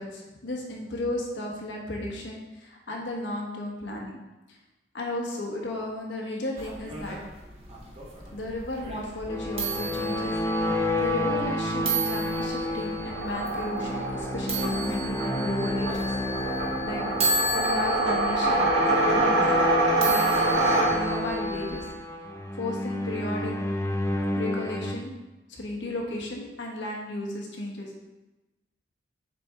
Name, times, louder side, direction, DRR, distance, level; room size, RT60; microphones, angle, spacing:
voice 1, 0.0-4.2 4.9-7.2 8.3-16.1 16.4-17.0 17.5-19.6 20.0-21.8 22.5-23.5 24.3-25.2 25.5-28.0, left 1 dB, 80° left, -1 dB, 1.4 m, -34 dB
sound 1, 6.6-21.9, right 2 dB, 35° right, 1.3 m, -35 dB
sound 2, 9.3-25.0, left 1 dB, 15° left, 0.4 m, -30 dB
sound 3, 13.0-21.4, right 2 dB, 65° right, 1.5 m, -26 dB
7.5 x 4.4 x 3.5 m, 1.1 s
head